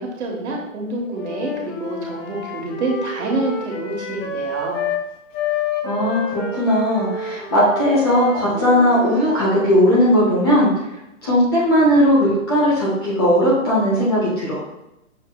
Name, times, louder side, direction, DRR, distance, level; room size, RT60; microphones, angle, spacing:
voice 1, 0.0-4.8, right 2 dB, 55° right, -2 dB, 1.3 m, -27 dB
Wind instrument woodwind instrument, 1.1-5.0 5.3-9.6, left 4 dB, 65° left, 1.3 m, -29 dB
voice 2, 5.8-10.7 11.2-14.6, equal, 20° left, -7 dB, 0.6 m, -17 dB
6.4 x 2.6 x 2.2 m, 0.91 s
hypercardioid pair, 160°, 41 cm